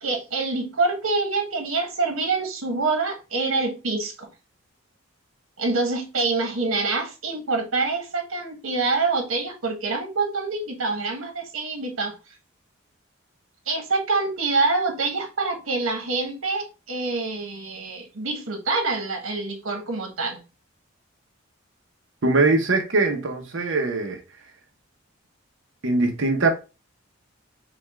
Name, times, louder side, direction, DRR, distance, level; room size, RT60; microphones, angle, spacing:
voice 1, 0.0-4.3 5.6-12.1 13.7-20.4, right 3 dB, 85° right, 1.3 m, -26 dB
voice 2, 22.2-24.2 25.8-26.5, right 3 dB, 65° right, 0.9 m, -21 dB
5.1 x 2.4 x 3.4 m
head